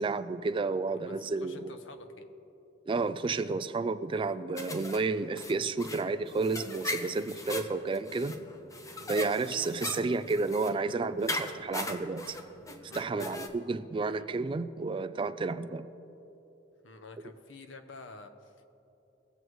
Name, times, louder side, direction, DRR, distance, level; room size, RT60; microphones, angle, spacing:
voice 1, 0.0-1.7 2.9-8.4 9.1-12.4 12.9-15.9, right 3 dB, 25° right, 11 dB, 0.3 m, -31 dB
voice 2, 0.8-2.3 8.9-9.1 12.9-13.4 14.1-14.3 16.8-18.6, left 3 dB, 80° left, 8 dB, 0.8 m, -49 dB
sound 1, 4.6-13.5, left 2 dB, 15° left, 0.7 m, -40 dB
20.0 x 7.9 x 3.1 m, 2.9 s
head